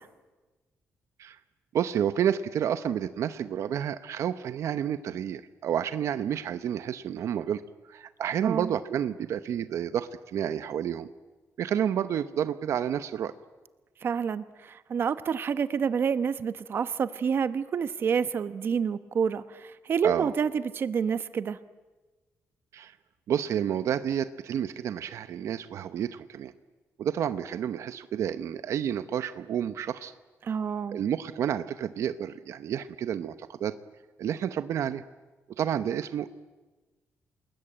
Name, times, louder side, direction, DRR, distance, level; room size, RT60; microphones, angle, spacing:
voice 1, 1.7-7.6 7.9-11.1 11.6-13.3 20.0-20.3 22.7-23.0 23.3-26.5 27.0-30.1 30.9-33.8 34.2-35.0 35.6-36.3, right 9 dB, 65° right, 12 dB, 0.8 m, -30 dB
voice 2, 14.0-21.6 30.4-31.0, right 6 dB, 45° right, 13 dB, 1.0 m, -28 dB
28.5 x 20.5 x 9.0 m, 1.2 s
cardioid pair, 145°, 5 cm